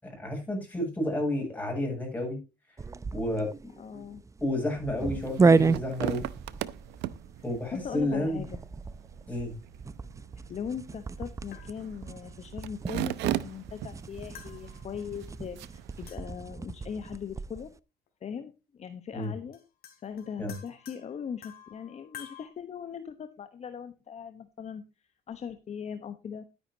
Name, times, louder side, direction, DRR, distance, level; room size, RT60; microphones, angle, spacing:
voice 1, 0.0-2.4 3.1-3.5 4.4-6.2 7.4-8.4 9.3-9.5 19.1-19.3 20.4-20.6, left 1 dB, 10° left, 1 dB, 8.0 m, -31 dB
sound 1, 2.8-17.7, right 4 dB, 20° right, 0.5 m, -32 dB
voice 2, 3.8-4.2 7.8-8.6 10.5-17.7 18.2-19.6 20.0-24.8 25.3-26.4, left 7 dB, 40° left, 9 dB, 1.1 m, -40 dB
sound 2, 5.0-16.1, right 13 dB, 85° right, 0.8 m, -39 dB
sound 3, 10.9-11.0 11.5-12.3 14.4-15.2 16.1-16.6 18.1-18.2 19.2-19.3 19.5-22.5, left 9 dB, 65° left, 3.3 m, -50 dB
12.5 x 10.0 x 2.9 m, 0.28 s
cardioid pair, 110°, 17 cm